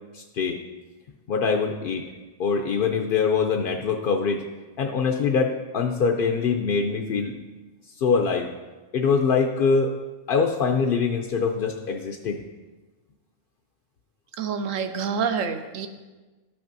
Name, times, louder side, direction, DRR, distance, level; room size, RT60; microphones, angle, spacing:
voice 1, 0.1-0.6 1.3-2.1 2.4-4.4 4.8-7.4 8.0-8.5 8.9-10.0 10.3-12.4, left 5 dB, 60° left, 3 dB, 0.6 m, -23 dB
voice 2, 14.4-15.9, right 6 dB, 75° right, 8 dB, 1.0 m, -27 dB
12.5 x 5.9 x 2.6 m, 1.2 s
omnidirectional pair, 1.4 m